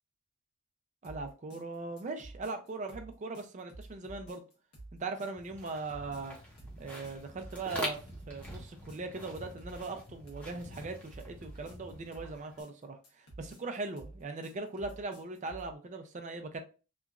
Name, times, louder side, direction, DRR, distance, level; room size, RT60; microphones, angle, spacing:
sound 1, 1.0-15.7, right 2 dB, 85° left, 1.1 m, -51 dB
voice 1, 1.0-4.4 5.0-6.4 6.8-8.0 8.3-16.6, right 3 dB, 35° right, 0.4 m, -40 dB
sound 2, 5.3-12.6, equal, 5° left, 0.6 m, -45 dB
2.9 x 2.4 x 2.3 m
head